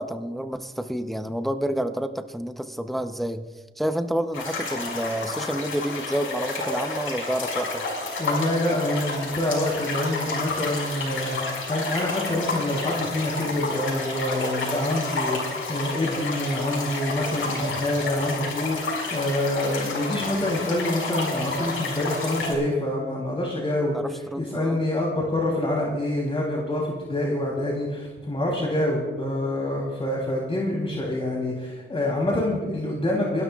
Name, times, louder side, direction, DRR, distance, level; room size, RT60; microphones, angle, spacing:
voice 1, 0.0-3.4 3.8-7.8 23.9-24.8, equal, ahead, 8 dB, 0.7 m, -29 dB
sound 1, 4.3-22.5, left 3 dB, 90° left, 5.1 m, -30 dB
voice 2, 8.2-33.4, left 1 dB, 30° left, -3 dB, 3.2 m, -26 dB
29.0 x 12.5 x 2.4 m, 1.3 s
cardioid pair, 80°, 20 cm